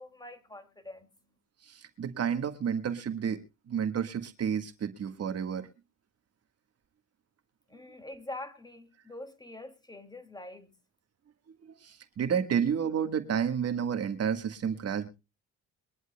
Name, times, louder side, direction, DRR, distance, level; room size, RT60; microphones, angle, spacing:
voice 1, 0.0-1.4 7.7-10.7, left 2 dB, 15° left, 2.3 m, -45 dB
voice 2, 1.6-5.7 11.8-15.1, right 7 dB, 55° right, 1.6 m, -31 dB
23.5 x 11.0 x 2.2 m
cardioid pair, 90°, 30 cm